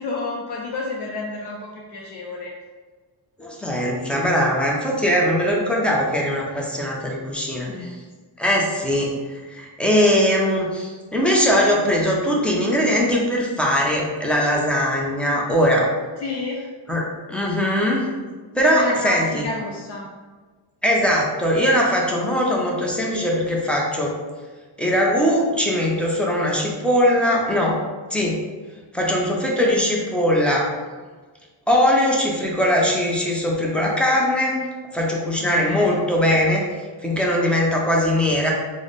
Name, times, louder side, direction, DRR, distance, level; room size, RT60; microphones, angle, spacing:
voice 1, 0.0-2.5 7.7-8.0 16.2-16.6 18.7-20.1 22.2-22.3 35.4-36.0, left 3 dB, 60° left, -2 dB, 0.5 m, -30 dB
voice 2, 3.4-7.7 8.4-15.9 16.9-17.0 17.3-18.1 18.5-19.5 20.8-24.1 24.8-27.8 28.1-28.4 28.9-30.7 31.7-34.6 34.9-36.6 37.0-38.5, equal, 5° left, -3 dB, 0.4 m, -20 dB
3.2 x 2.0 x 3.9 m, 1.4 s
wide cardioid pair, 165°, 47 cm